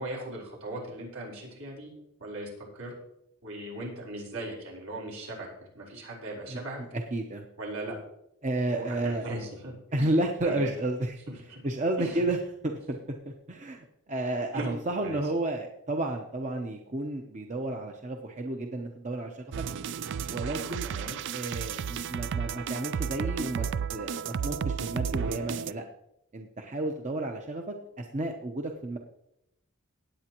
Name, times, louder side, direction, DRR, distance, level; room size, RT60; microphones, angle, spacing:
voice 1, 0.0-1.9 2.2-2.9 3.4-5.5 5.7-6.8 7.6-8.0 8.7-9.7 10.0-10.1 10.4-10.7 11.5-11.6 12.0-12.2 14.5-14.7 15.0-15.2 20.8-21.2, right 1 dB, 75° right, -2 dB, 4.5 m, -38 dB
voice 2, 6.9-7.4 8.4-9.3 9.9-11.2 11.5-12.4 12.6-13.0 13.2-19.6 20.3-20.9 21.3-25.8 26.3-29.0, right 2 dB, 35° right, 3 dB, 0.8 m, -32 dB
sound 1, 19.5-25.7, right 7 dB, 55° right, 0.3 m, -33 dB
18.0 x 8.6 x 3.0 m, 0.81 s
head